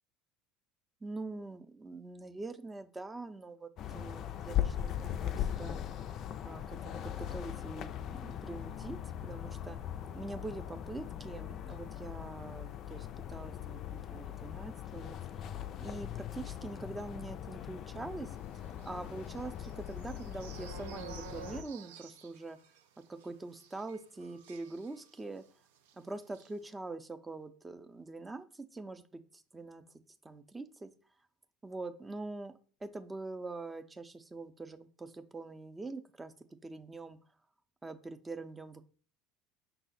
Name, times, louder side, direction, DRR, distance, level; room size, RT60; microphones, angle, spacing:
voice 1, 1.0-5.8 6.4-15.2 15.4-15.5 15.8-18.4 18.8-22.6 23.1-25.4 26.0-30.9 31.6-36.3 36.6-37.2 37.8-38.8, right 3 dB, 15° right, 9 dB, 0.5 m, -44 dB
sound 1, 3.8-21.6, left 11 dB, 50° left, 0.3 m, -40 dB
sound 2, 18.7-25.5 25.7-25.9 26.2-26.5, right 9 dB, 80° right, 0.4 m, -52 dB
5.7 x 2.0 x 3.9 m, 0.43 s
hypercardioid pair, 80°, 0 cm